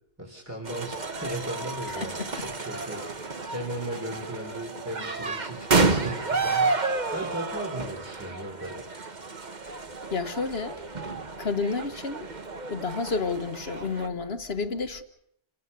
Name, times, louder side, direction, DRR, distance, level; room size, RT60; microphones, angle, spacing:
voice 1, 0.2-8.8, right 1 dB, 15° right, 3.8 m, -37 dB
sound 1, 0.6-14.1, right 3 dB, 40° right, 1.4 m, -30 dB
voice 2, 2.0-2.3 10.1-10.8 11.4-12.3 12.7-15.0, left 4 dB, 60° left, 1.7 m, -30 dB
29.0 x 17.5 x 6.9 m
omnidirectional pair, 1.2 m